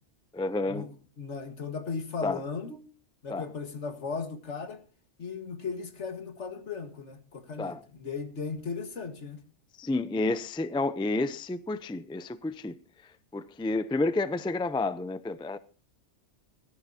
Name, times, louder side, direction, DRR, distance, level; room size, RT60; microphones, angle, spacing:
voice 1, 0.3-0.9 2.2-2.4 3.3-3.5 7.6-7.8 9.8-12.8 13.3-15.6, left 2 dB, 10° left, 0.3 m, -30 dB
voice 2, 1.2-2.8 3.2-4.8 5.2-9.4, left 5 dB, 80° left, 2.0 m, -36 dB
17.0 x 13.5 x 2.8 m
omnidirectional pair, 1.2 m